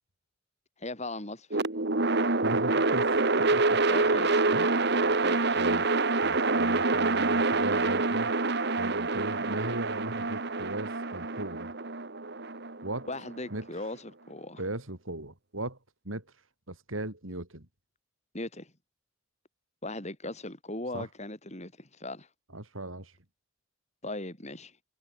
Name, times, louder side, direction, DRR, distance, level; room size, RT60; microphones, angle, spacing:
voice 1, 0.8-1.6 3.9-4.4 5.2-5.6 13.1-14.6 18.3-18.7 19.8-22.3 24.0-24.7, left 2 dB, 35° left, 6.2 m, -38 dB
sound 1, 1.5-13.6, right 3 dB, 55° right, 1.8 m, -26 dB
voice 2, 2.4-3.8 4.5-4.9 5.5-5.9 6.2-8.3 8.8-11.7 12.8-13.1 13.5-13.7 14.6-15.8 16.0-16.2 16.7-17.7 20.9-21.1 22.5-23.1, right 1 dB, 85° right, 5.9 m, -37 dB
head